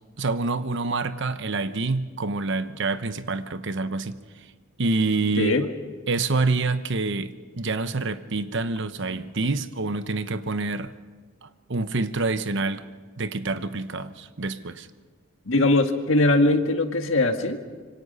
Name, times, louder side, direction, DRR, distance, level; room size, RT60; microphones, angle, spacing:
voice 1, 0.2-4.2 4.8-5.5 6.1-10.9 11.4-12.9 13.2-14.9, right 3 dB, 65° right, 11 dB, 1.0 m, -27 dB
voice 2, 5.4-5.7 15.5-17.6, left 2 dB, 70° left, 6 dB, 1.8 m, -21 dB
26.0 x 24.5 x 5.5 m, 1.5 s
head